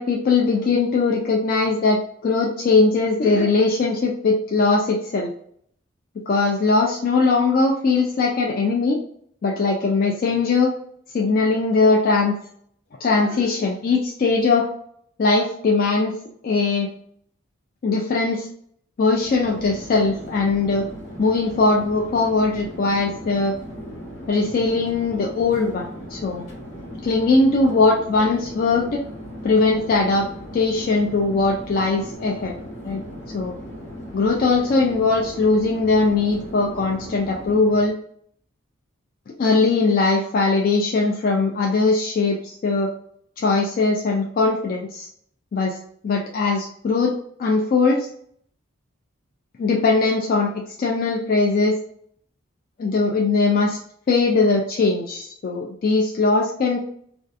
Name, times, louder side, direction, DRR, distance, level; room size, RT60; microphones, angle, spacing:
voice 1, 0.0-5.3 6.3-9.0 9.4-10.7 11.1-12.4 13.0-14.7 15.2-16.2 16.4-16.9 17.8-18.5 19.0-20.9 21.2-23.6 24.3-26.5 27.0-29.0 29.4-30.3 30.5-32.6 32.8-33.0 33.3-33.6 34.1-38.0 39.4-42.9 43.4-45.1 45.5-45.8 46.0-47.1 47.4-48.1 49.6-50.5 50.8-51.8 52.8-53.8 54.1-56.8, left 3 dB, 45° left, -1 dB, 0.3 m, -20 dB
Chatter / Fixed-wing aircraft airplane, 19.1-38.0, equal, 80° left, 1.2 m, -37 dB
2.5 x 2.3 x 2.5 m, 0.64 s
head